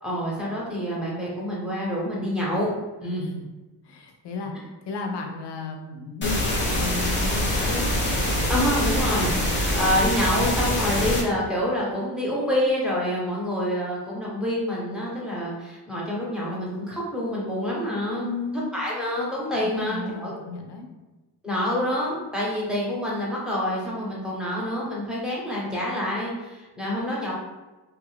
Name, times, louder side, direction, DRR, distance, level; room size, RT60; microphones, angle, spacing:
voice 1, 0.0-2.7 3.0-3.2 8.5-18.3 18.7-20.4 21.4-27.3, equal, ahead, -6 dB, 0.8 m, -27 dB
voice 2, 3.0-3.4 3.8-7.9 18.1-18.7 19.6-20.9, left 4 dB, 80° left, 3 dB, 0.6 m, -34 dB
sound 1, 6.2-11.2, left 1 dB, 30° left, 0.6 m, -24 dB
3.2 x 2.3 x 3.2 m, 1.2 s
wide cardioid pair, 165°, 41 cm